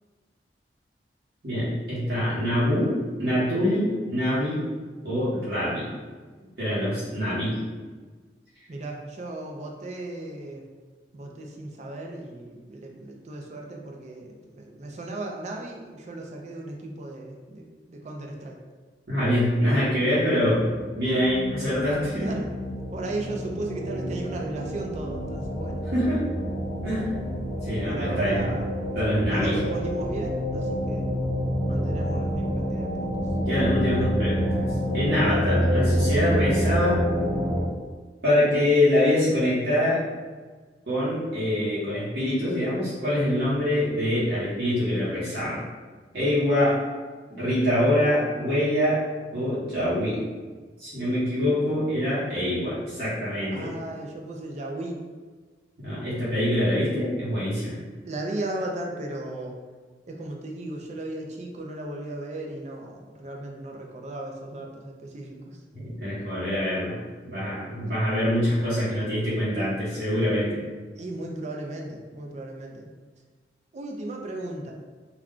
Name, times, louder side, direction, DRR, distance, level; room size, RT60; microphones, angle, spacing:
voice 1, 1.4-2.9 3.2-4.6 5.0-5.9 6.6-7.6 19.1-20.7 20.9-22.3 25.9-26.2 26.8-27.0 27.6-28.4 28.9-29.6 33.5-34.6 34.9-37.0 38.2-40.0 40.9-45.6 46.1-46.8 47.3-49.0 49.3-50.2 50.8-53.7 55.8-57.8 65.7-66.9 67.2-70.6, left 1 dB, 60° right, -10 dB, 1.0 m, -24 dB
voice 2, 8.7-10.6 11.1-18.6 22.2-22.5 22.9-25.8 27.8-28.7 29.2-31.1 31.7-33.1 53.5-55.0 58.0-59.5 60.1-65.6 71.0-72.9 73.7-74.7, right 1 dB, 40° right, 1 dB, 0.4 m, -36 dB
sound 1, 20.3-37.6, equal, 85° right, 0.7 m, -28 dB
2.3 x 2.2 x 3.6 m, 1.4 s
head